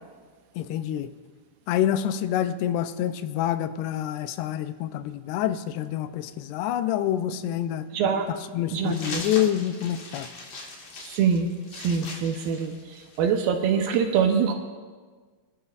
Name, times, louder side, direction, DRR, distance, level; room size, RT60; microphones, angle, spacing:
voice 1, 0.6-1.1 1.7-7.9 8.3-10.3, left 11 dB, 85° left, 11 dB, 2.7 m, -27 dB
voice 2, 7.9-8.3 8.7-9.2 11.0-11.5 11.8-12.7 13.2-14.5, right 7 dB, 75° right, 4 dB, 2.3 m, -24 dB
sound 1, 8.9-13.3, left 3 dB, 55° left, 1.8 m, -39 dB
26.5 x 12.0 x 2.4 m, 1.5 s
omnidirectional pair, 4.7 m